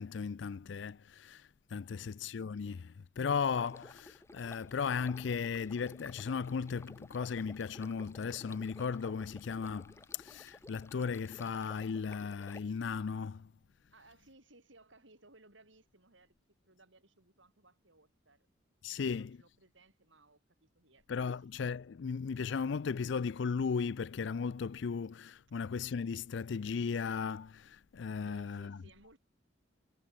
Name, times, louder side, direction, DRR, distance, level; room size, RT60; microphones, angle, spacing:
voice 1, 0.0-13.5 18.8-19.4 21.1-28.8, left 5 dB, 65° left, 0.4 m, -36 dB
voice 2, 1.9-2.3 13.9-16.3 16.6-18.5 18.8-21.1 21.3-21.4 28.2-29.2, right 2 dB, 75° right, 7.9 m, -62 dB
Stream, 3.5-12.6, left 2 dB, 15° left, 0.5 m, -55 dB
head